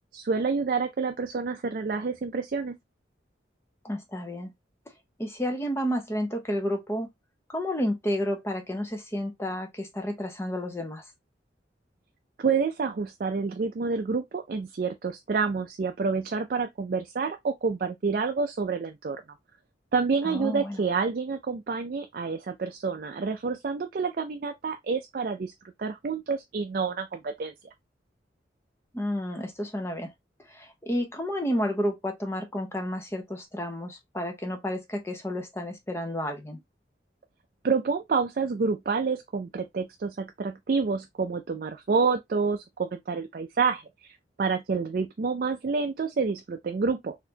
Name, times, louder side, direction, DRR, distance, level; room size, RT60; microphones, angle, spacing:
voice 1, 0.1-2.8 12.4-19.2 19.9-25.5 25.8-27.5 37.6-47.2, right 4 dB, 50° right, 0.4 m, -28 dB
voice 2, 3.8-4.5 5.2-7.1 7.5-11.0 20.2-20.8 28.9-30.1 30.5-36.6, equal, 15° left, 0.8 m, -31 dB
4.1 x 2.7 x 2.7 m
head